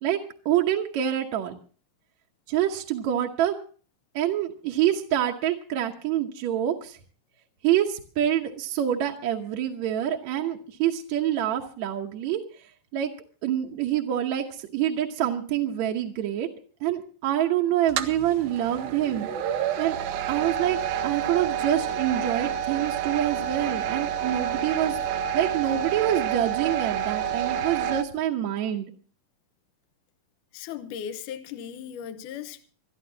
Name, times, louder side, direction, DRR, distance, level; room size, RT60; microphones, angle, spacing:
voice 1, 0.0-1.6 2.5-3.6 4.1-7.0 7.6-12.6 12.9-13.1 13.4-16.5 16.8-19.3 19.8-20.0 20.3-25.0 25.3-28.9, right 11 dB, 65° right, 2.1 m, -26 dB
sound 1, 17.9-28.0, right 9 dB, 85° right, 2.6 m, -29 dB
voice 2, 30.5-32.7, left 8 dB, 70° left, 2.4 m, -37 dB
27.0 x 13.0 x 2.8 m
omnidirectional pair, 4.0 m